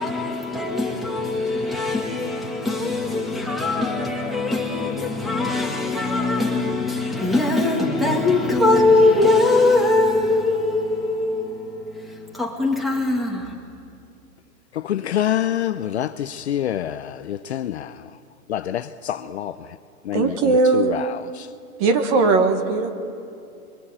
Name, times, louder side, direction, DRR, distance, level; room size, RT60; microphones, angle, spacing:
voice 1, 0.0-13.5, left 2 dB, ahead, 1.8 m, -21 dB
voice 2, 14.8-17.9 18.5-19.5 20.1-20.3 20.7-21.1, left 11 dB, 50° left, 0.6 m, -26 dB
voice 3, 20.1-21.0 21.8-22.9, right 3 dB, 25° right, 1.3 m, -19 dB
28.5 x 23.5 x 8.9 m
hypercardioid pair, 175°, 44 cm